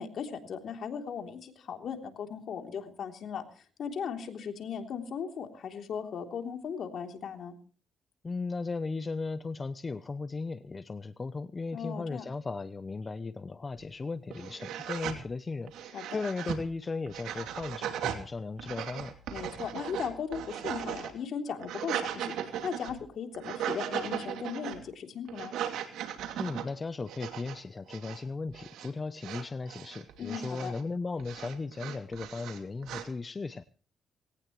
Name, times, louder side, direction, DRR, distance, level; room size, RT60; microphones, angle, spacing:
voice 1, 0.0-3.4 3.8-7.5 11.7-12.3 15.9-16.2 19.3-25.6 30.2-30.7, left 7 dB, 65° left, 5 dB, 3.4 m, -37 dB
voice 2, 8.2-19.1 26.4-33.7, left 3 dB, 30° left, 13 dB, 0.8 m, -36 dB
sound 1, 13.8-13.9 14.3-15.2 15.7-16.6 17.1-18.2 18.6-21.1 21.5-23.0 23.3-24.8 25.3-26.6 27.1-27.6 27.9-28.2 28.5-28.9 29.2-30.8 31.2-33.1, right 10 dB, 85° right, 2.8 m, -37 dB
19.5 x 18.0 x 3.2 m, 0.39 s
cardioid pair, 90°, 0 cm